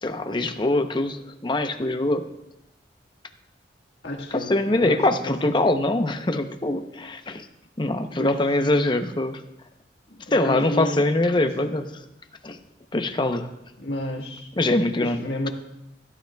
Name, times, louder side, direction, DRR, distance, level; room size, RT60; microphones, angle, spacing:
voice 1, 0.0-2.3 4.3-7.5 7.8-9.4 10.3-11.9 12.4-12.6 12.9-13.5 14.6-15.2, left 2 dB, 25° left, 7 dB, 0.7 m, -23 dB
voice 2, 4.0-5.5 8.2-8.4 10.2-11.0 11.4-11.8 13.8-14.5 15.0-15.5, left 1 dB, 70° left, 1 dB, 1.6 m, -31 dB
16.0 x 11.5 x 2.3 m, 0.86 s
head